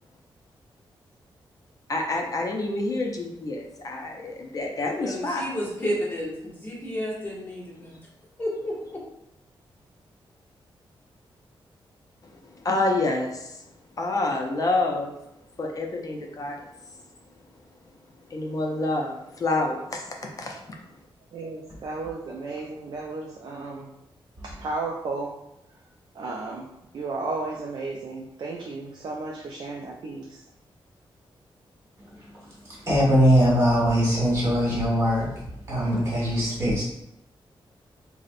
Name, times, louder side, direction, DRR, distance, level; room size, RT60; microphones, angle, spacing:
voice 1, 1.9-5.5 12.6-13.6 14.0-15.1 15.6-16.6 18.3-20.6, left 2 dB, 40° left, 1 dB, 0.4 m, -27 dB
voice 2, 5.0-7.9 8.4-9.0, equal, 20° left, -5 dB, 0.9 m, -31 dB
voice 3, 21.3-23.9 24.4-25.4 26.1-30.5, right 3 dB, 50° right, -1 dB, 0.3 m, -34 dB
voice 4, 32.7-35.3 35.7-36.8, equal, 30° right, -7 dB, 1.3 m, -21 dB
4.0 x 2.0 x 2.5 m, 0.83 s
wide cardioid pair, 165°, 9 cm